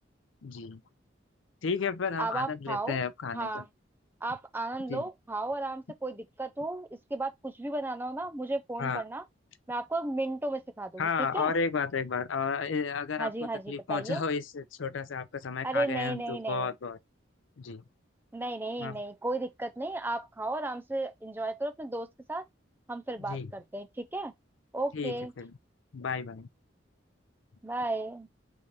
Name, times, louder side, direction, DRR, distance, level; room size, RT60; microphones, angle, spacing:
voice 1, 0.4-0.8 1.6-3.6 4.9-5.0 8.8-9.0 11.0-13.3 13.7-17.0 17.6-17.8 18.8-19.0 23.2-23.5 24.9-25.5 25.9-26.5, left 5 dB, 80° left, 0.5 m, -32 dB
voice 2, 2.2-3.0 3.3-3.7 4.2-9.2 9.7-11.5 13.2-14.2 15.6-16.7 18.3-22.4 22.9-24.3 24.7-25.3 27.6-28.3, right 2 dB, 10° right, 0.5 m, -34 dB
3.5 x 3.3 x 4.2 m
head